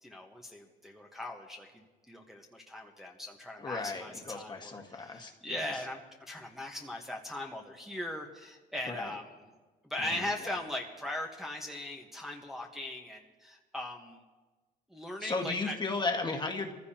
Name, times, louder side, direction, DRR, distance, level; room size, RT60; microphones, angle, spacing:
voice 1, 0.0-9.3 9.8-14.2 14.9-15.7, left 1 dB, ahead, -1 dB, 1.2 m, -39 dB
voice 2, 3.6-5.8 8.8-9.1 10.0-10.5 15.2-16.7, left 3 dB, 25° left, 3 dB, 1.6 m, -36 dB
24.0 x 15.0 x 2.9 m, 1.3 s
cardioid pair, 110°, 17 cm